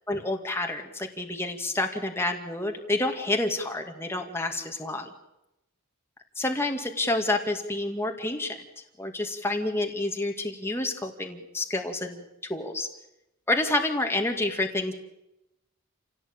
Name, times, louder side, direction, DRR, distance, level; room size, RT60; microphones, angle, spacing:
voice 1, 0.1-5.1 6.4-8.6 9.0-12.2 12.5-12.9 13.5-14.9, left 2 dB, 10° left, 3 dB, 2.2 m, -28 dB
28.0 x 17.0 x 8.9 m, 0.90 s
head